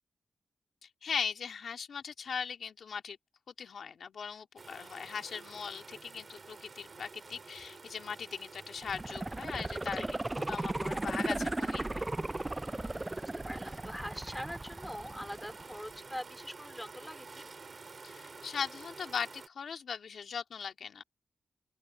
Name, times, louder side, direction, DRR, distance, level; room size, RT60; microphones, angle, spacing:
voice 1, 0.8-3.2 3.6-10.1 10.5-12.1 18.0-21.0, left 6 dB, 75° left, 2.6 m, -39 dB
sound 1, 4.6-19.5, right 4 dB, 40° right, 2.3 m, -51 dB
sound 2, 8.8-15.8 16.2-16.3, right 2 dB, 15° right, 0.3 m, -36 dB
voice 2, 12.8-17.5, equal, 5° left, 3.8 m, -43 dB
open air
wide cardioid pair, 140°, 0 cm